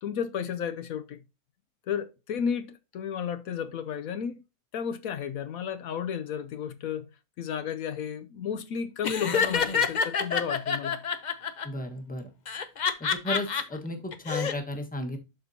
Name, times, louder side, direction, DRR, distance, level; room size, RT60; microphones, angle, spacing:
voice 1, 0.0-1.2 1.9-4.4 4.7-7.1 7.4-11.0, left 7 dB, 70° left, 1.1 m, -33 dB
Laughter, 9.0-11.6 12.5-13.6 14.1-14.5, left 6 dB, 45° left, 0.6 m, -27 dB
voice 2, 11.6-12.3 13.0-15.2, left 1 dB, 5° left, 1.2 m, -34 dB
12.0 x 4.3 x 2.7 m
omnidirectional pair, 1.6 m